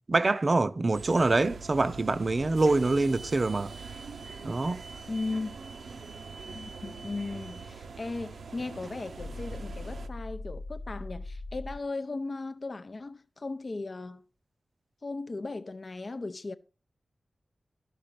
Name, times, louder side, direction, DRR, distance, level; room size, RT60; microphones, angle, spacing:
voice 1, 0.1-3.7 4.4-4.8, right 3 dB, 40° right, 0.5 m, -25 dB
sound 1, 0.9-10.1, right 4 dB, 90° right, 0.7 m, -43 dB
voice 2, 5.1-5.5 6.5-14.2 15.0-16.5, left 3 dB, 45° left, 0.5 m, -37 dB
sound 2, 9.2-11.8, left 2 dB, 85° left, 0.8 m, -40 dB
12.5 x 5.0 x 5.9 m
wide cardioid pair, 110°, 0 cm